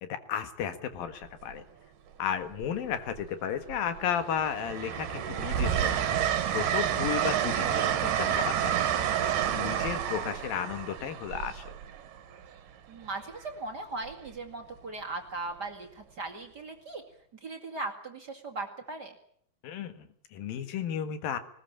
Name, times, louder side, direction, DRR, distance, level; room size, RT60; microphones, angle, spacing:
voice 1, 0.0-1.6 2.2-6.1 6.5-11.6 19.6-21.4, left 8 dB, 80° left, 10 dB, 3.4 m, -34 dB
Train, 0.9-1.3 2.6-3.3 3.7-12.5 14.1-14.3, right 10 dB, 70° right, 2.8 m, -29 dB
voice 2, 12.9-17.0 17.3-19.2, right 3 dB, 35° right, 2 dB, 2.3 m, -38 dB
20.0 x 20.0 x 8.8 m, 0.63 s
omnidirectional pair, 4.0 m